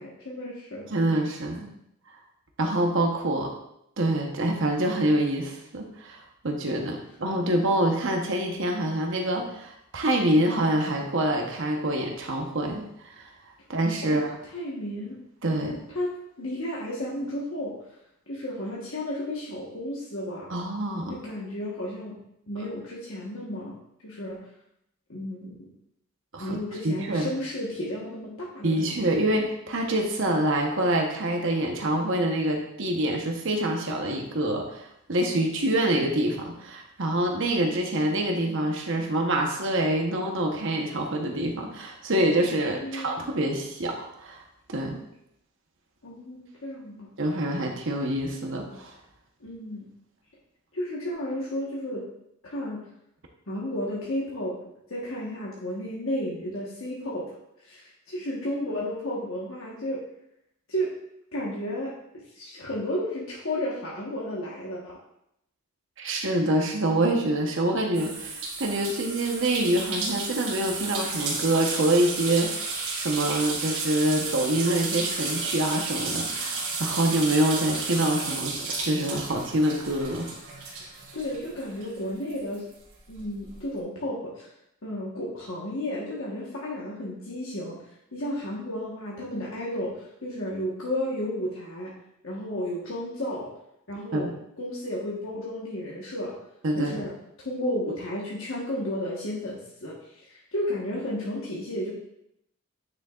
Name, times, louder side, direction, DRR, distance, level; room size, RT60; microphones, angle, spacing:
voice 1, 0.0-1.2 14.0-14.2 14.5-15.2 15.5-17.7 18.3-20.5 21.1-22.1 22.5-23.8 24.0-24.4 25.1-25.7 26.4-29.1 42.7-43.3 46.0-47.1 49.4-49.9 50.7-52.0 52.4-52.8 53.5-54.5 54.9-57.3 57.6-60.0 60.7-60.9 61.3-61.9 62.3-65.0 80.8-82.7 83.1-84.5 84.8-87.8 88.1-91.9 92.2-93.5 93.9-94.3 94.6-96.3 96.8-97.1 97.4-99.9 100.3-101.9, left 1 dB, 65° left, -5 dB, 1.3 m, -33 dB
voice 2, 0.9-1.7 2.6-3.5 4.0-12.8 13.1-13.3 13.7-14.4 15.4-15.8 20.5-21.2 26.3-26.6 26.8-27.3 28.6-44.4 44.7-45.0 47.2-48.9 66.0-80.3 94.1-94.3 96.6-97.0, right 1 dB, 60° right, 2 dB, 1.1 m, -26 dB
sound 1, 67.9-82.0 82.3-83.5, right 3 dB, 75° right, 2.5 m, -33 dB
9.3 x 6.6 x 2.5 m, 0.78 s
head